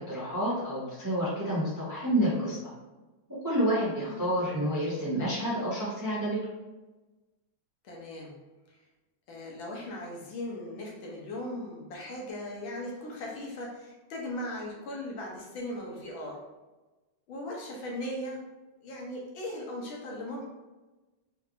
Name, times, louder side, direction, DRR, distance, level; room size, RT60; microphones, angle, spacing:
voice 1, 0.0-2.6 3.4-6.4, equal, 15° right, -9 dB, 0.7 m, -29 dB
voice 2, 7.8-8.4 8.7-8.8 9.3-16.5 17.3-18.4 18.8-20.4, left 1 dB, 75° left, -2 dB, 1.5 m, -38 dB
4.3 x 3.3 x 2.5 m, 1.1 s
omnidirectional pair, 2.3 m